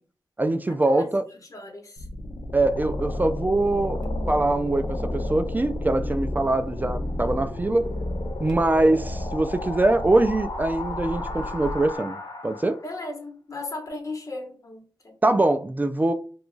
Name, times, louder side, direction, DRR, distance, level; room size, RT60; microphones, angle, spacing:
voice 1, 0.4-1.2 2.5-4.0 4.3-7.9 8.4-12.2 12.4-12.8 15.2-16.1, right 2 dB, 20° right, 0.3 m, -23 dB
voice 2, 1.5-2.0 12.8-15.1, left 2 dB, 45° left, 1.0 m, -36 dB
sound 1, 2.0-12.9, left 1 dB, 65° left, 1.0 m, -32 dB
Bark, 4.0-12.0, equal, 75° right, 0.8 m, -43 dB
3.0 x 2.3 x 3.8 m
wide cardioid pair, 95°, 8 cm